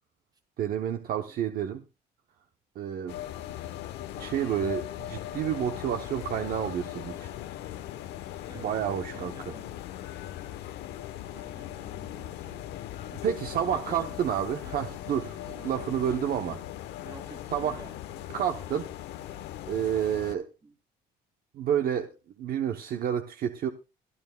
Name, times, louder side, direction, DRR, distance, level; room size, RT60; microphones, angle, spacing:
voice 1, 0.6-1.8 2.8-3.2 4.2-7.3 8.5-9.5 13.1-16.6 17.5-17.8 18.3-18.9 19.7-20.5 21.5-22.1 22.4-23.7, right 9 dB, 60° right, 0.8 m, -30 dB
sound 1, 3.1-20.3, left 12 dB, 85° left, 1.0 m, -39 dB
voice 2, 9.1-9.8 11.3-12.8 13.7-14.2 14.6-14.8 15.6-16.7 17.0-18.0 20.6-20.7, right 3 dB, 25° right, 2.3 m, -49 dB
23.0 x 9.7 x 2.3 m
cardioid pair, 110°, 17 cm